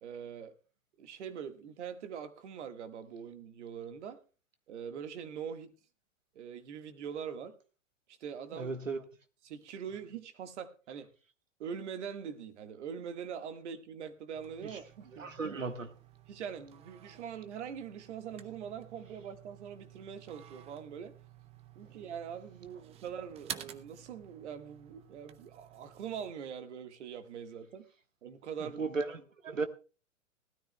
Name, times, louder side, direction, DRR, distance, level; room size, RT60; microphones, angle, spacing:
voice 1, 0.0-0.5 1.0-4.2 4.7-5.7 6.4-7.6 8.1-8.7 9.4-11.1 11.6-15.6 16.3-21.1 21.8-27.9 28.2-28.8 29.5-29.6, right 7 dB, 65° right, 1.7 m, -43 dB
voice 2, 8.5-9.0 14.6-14.8 15.1-15.9 21.8-22.0 28.6-29.7, right 4 dB, 90° right, 1.4 m, -36 dB
sound 1, 14.3-26.3, right 10 dB, 15° right, 0.5 m, -51 dB
18.5 x 13.0 x 2.2 m
figure-of-eight pair, 105°, 38 cm